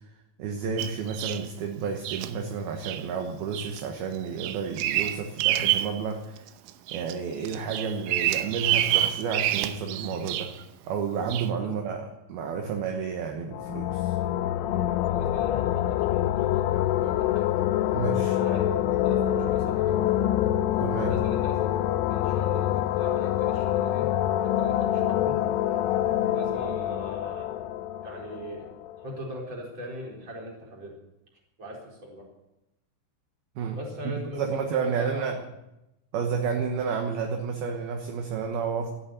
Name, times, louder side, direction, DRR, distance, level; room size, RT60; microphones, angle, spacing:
voice 1, 0.4-6.4 6.9-10.5 10.9-14.2 17.9-18.4 20.8-21.1 33.6-33.8 34.0-35.4 36.1-38.9, right 6 dB, 65° right, 3 dB, 2.8 m, -31 dB
Bird vocalization bird call bird song, 0.8-1.5 2.0-2.3 2.8-3.0 3.5-3.8 4.1-6.0 6.4-7.1 7.5-10.6 11.3-11.5, right 13 dB, 85° right, 3.3 m, -27 dB
sound 1, 13.5-29.1, left 12 dB, 90° left, 3.3 m, -26 dB
voice 2, 15.0-17.5 18.3-20.1 21.0-21.5 22.1-24.1 24.4-25.4 26.3-27.5 28.0-28.7 29.0-31.0 31.6-32.3 33.8-35.3, equal, 25° right, -2 dB, 4.5 m, -39 dB
14.0 x 11.0 x 9.0 m, 0.91 s
omnidirectional pair, 5.5 m